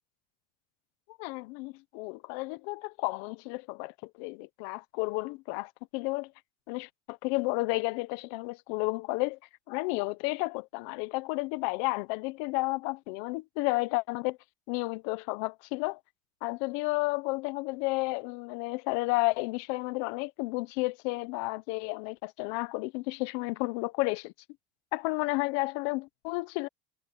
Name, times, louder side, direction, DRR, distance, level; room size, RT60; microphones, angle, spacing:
voice 1, 1.2-6.3 6.7-9.4 9.7-14.4 14.7-16.0 16.4-24.3 24.9-26.7, left 24 dB, 65° left, 1.0 m, -32 dB
supercardioid pair, 140°, 16 cm